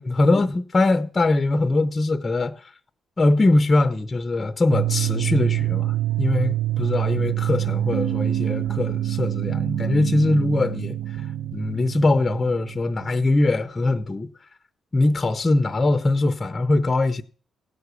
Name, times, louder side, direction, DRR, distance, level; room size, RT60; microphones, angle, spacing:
voice 1, 0.0-2.7 3.2-11.3 11.5-14.3 14.9-17.2, left 2 dB, 20° left, 0.6 m, -22 dB
sound 1, 4.7-13.5, right 13 dB, 85° right, 0.8 m, -26 dB
16.0 x 5.9 x 8.2 m
cardioid pair, 135°, 0 cm